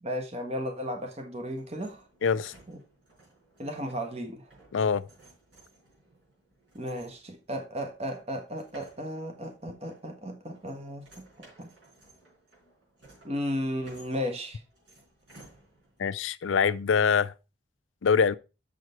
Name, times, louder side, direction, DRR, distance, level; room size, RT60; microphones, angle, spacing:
voice 1, 0.0-2.1 2.7-2.8 3.6-4.4 6.7-11.1 11.4-11.7 13.2-14.6, equal, 30° right, 1.3 m, -34 dB
sound 1, 1.5-16.1, right 2 dB, 65° right, 4.9 m, -58 dB
voice 2, 2.2-2.5 4.7-5.0 16.0-17.3 18.0-18.4, left 6 dB, 80° left, 0.5 m, -24 dB
6.7 x 6.3 x 4.4 m
head